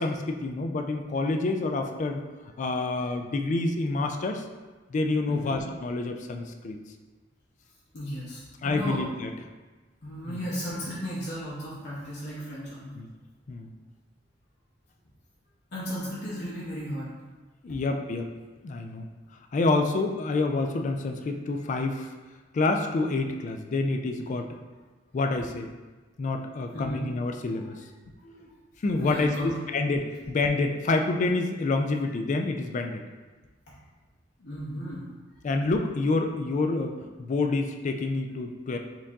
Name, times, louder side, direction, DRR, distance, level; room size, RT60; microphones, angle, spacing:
voice 1, 0.0-2.2 2.6-4.4 4.9-6.8 8.6-9.3 10.3-10.4 13.0-13.1 13.5-13.7 17.6-18.3 18.6-19.1 19.5-22.1 22.5-24.6 25.1-25.7 26.2-27.8 28.8-33.0 35.4-38.8, left 3 dB, 40° left, 4 dB, 0.3 m, -28 dB
voice 2, 5.3-5.6 7.9-9.0 10.0-13.0 15.7-17.1 26.7-27.0 27.6-27.7 28.2-28.5 29.0-29.5 33.7-33.8 34.4-35.1, equal, 60° left, -8 dB, 0.8 m, -35 dB
4.5 x 2.6 x 3.5 m, 1.3 s
head